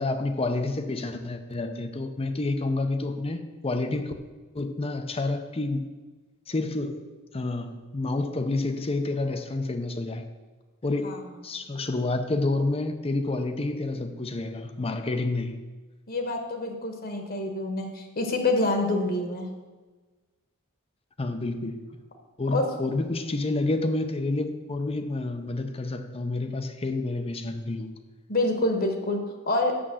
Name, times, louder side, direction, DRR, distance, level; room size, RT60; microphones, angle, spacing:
voice 1, 0.0-4.1 4.5-5.9 6.5-7.1 7.3-10.2 10.8-15.6 21.2-21.8 22.4-27.9, left 2 dB, 25° left, 0.6 m, -29 dB
voice 2, 16.1-19.5 22.5-22.7 28.3-29.8, left 2 dB, 45° left, 1.2 m, -27 dB
6.8 x 6.3 x 7.7 m
head